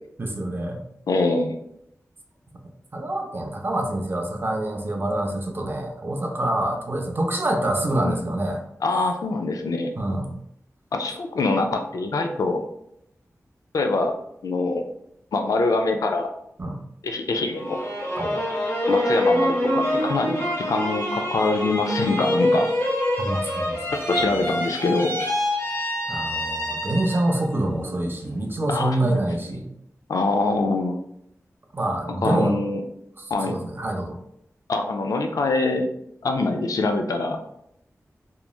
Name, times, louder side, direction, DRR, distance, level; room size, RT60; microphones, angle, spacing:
voice 1, 0.2-0.8 2.9-8.6 10.0-10.3 16.6-16.8 18.2-18.4 23.2-23.8 24.2-24.4 26.1-29.7 31.7-32.6 33.2-34.2, right 1 dB, 40° right, 1 dB, 0.4 m, -26 dB
voice 2, 1.1-1.5 8.0-8.2 8.8-9.9 10.9-12.6 13.7-14.1 14.4-14.8 15.3-16.3 17.0-17.8 18.9-22.7 24.1-25.1 28.7-29.2 30.1-31.0 32.2-32.8 33.3-33.6 34.7-35.9 36.2-37.4, left 3 dB, 85° left, 5 dB, 0.3 m, -24 dB
sound 1, 17.6-27.4 27.8-28.5, left 1 dB, 45° left, 0.9 m, -25 dB
3.0 x 2.2 x 2.3 m, 0.76 s
wide cardioid pair, 105°, 6 cm